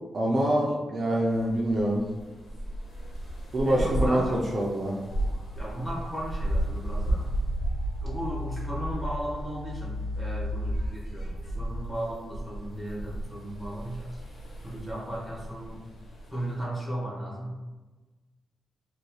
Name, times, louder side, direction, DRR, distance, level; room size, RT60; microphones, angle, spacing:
voice 1, 0.1-2.0 3.5-4.9, right 1 dB, 40° right, -3 dB, 0.4 m, -25 dB
sound 1, 1.3-16.6, right 1 dB, 80° left, 0.9 m, -34 dB
voice 2, 3.6-4.4 5.5-7.3 8.0-14.2 14.6-15.8 16.3-17.6, right 1 dB, 10° left, -6 dB, 1.2 m, -36 dB
sound 2, 5.1-5.4 5.7-10.7, left 2 dB, 45° left, 0.8 m, -37 dB
3.9 x 3.0 x 2.3 m, 1.2 s
wide cardioid pair, 145°, 0 cm